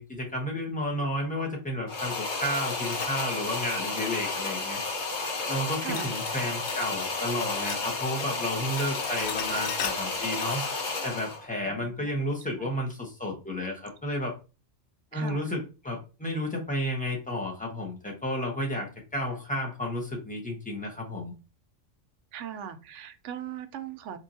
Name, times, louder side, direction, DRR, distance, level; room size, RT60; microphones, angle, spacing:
voice 1, 0.0-4.8 5.5-10.6 11.0-14.3 15.1-21.3, left 1 dB, 5° left, -1 dB, 1.0 m, -32 dB
sound 1, 1.9-11.5, left 3 dB, 40° left, 0.9 m, -32 dB
sound 2, 2.6-4.7 5.9-6.9 7.2-8.3 8.6-10.8, left 8 dB, 85° left, 1.0 m, -40 dB
voice 2, 5.8-6.1 11.6-12.2 15.1-15.5 22.3-24.2, right 9 dB, 75° right, 10 dB, 0.9 m, -39 dB
4.5 x 2.7 x 2.6 m, 0.31 s
omnidirectional pair, 1.3 m